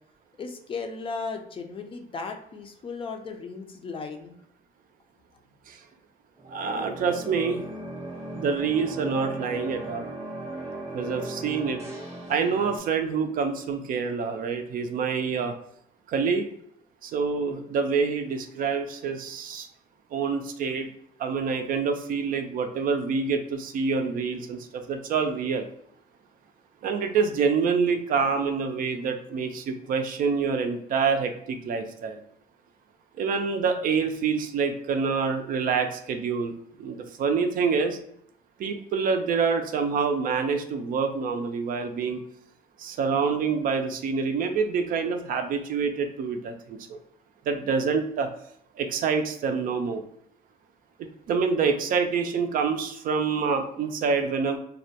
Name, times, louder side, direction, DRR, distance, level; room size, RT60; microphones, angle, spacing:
voice 1, 0.4-4.3, left 4 dB, 30° left, 4 dB, 0.4 m, -36 dB
sound 1, 6.4-12.8, right 1 dB, 15° right, 0.7 m, -37 dB
voice 2, 6.5-7.6 8.3-10.1 10.9-11.8 12.3-15.5 16.1-16.5 17.0-19.7 20.1-20.9 21.2-25.6 26.8-32.2 33.2-38.0 38.6-42.2 42.8-46.8 47.5-48.3 48.8-50.0 51.0-54.6, right 5 dB, 55° right, 6 dB, 0.4 m, -26 dB
2.2 x 2.1 x 2.8 m, 0.72 s
cardioid pair, 110°, 17 cm